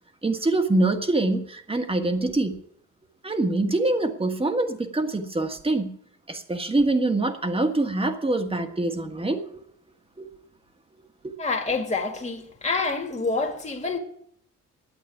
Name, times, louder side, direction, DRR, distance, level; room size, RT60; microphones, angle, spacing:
voice 1, 0.2-2.6 3.2-6.0 6.3-9.6 10.2-10.3, right 2 dB, 20° right, 1.6 m, -24 dB
voice 2, 11.4-14.0, left 3 dB, 25° left, 2.1 m, -27 dB
10.0 x 8.3 x 9.0 m
cardioid pair, 90°, 30 cm